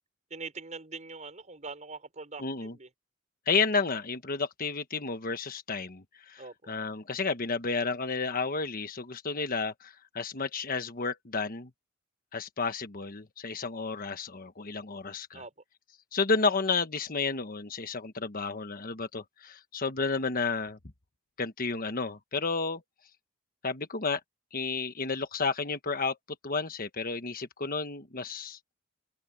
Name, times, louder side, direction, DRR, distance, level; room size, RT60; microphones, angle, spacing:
voice 1, 0.3-2.9 6.4-6.6 15.3-15.5, right 4 dB, 35° right, 5.9 m, -43 dB
voice 2, 2.4-2.7 3.5-6.4 6.7-11.7 12.3-15.3 16.1-20.8 21.4-22.8 23.6-24.2 24.5-26.2 26.4-28.6, left 4 dB, 45° left, 1.3 m, -31 dB
open air
head